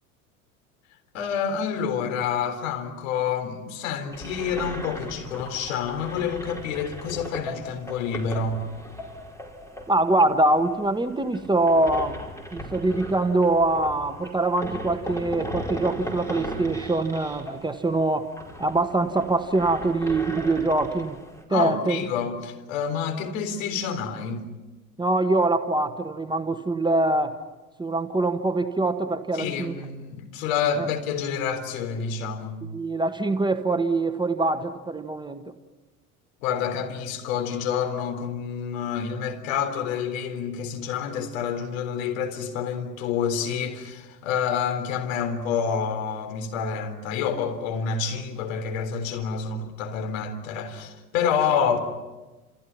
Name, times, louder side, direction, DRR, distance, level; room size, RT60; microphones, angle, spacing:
voice 1, 1.1-8.6 21.5-24.5 29.4-32.6 36.4-51.8, left 7 dB, 60° left, 3.9 m, -28 dB
sound 1, 4.1-21.4, equal, 5° left, 4.9 m, -38 dB
voice 2, 9.9-18.3 18.6-21.2 21.5-22.0 25.0-27.4 27.8-29.8 30.8-30.9 32.7-35.4, right 2 dB, 10° right, 1.4 m, -24 dB
30.0 x 28.5 x 5.8 m
figure-of-eight pair, 75°, 44 cm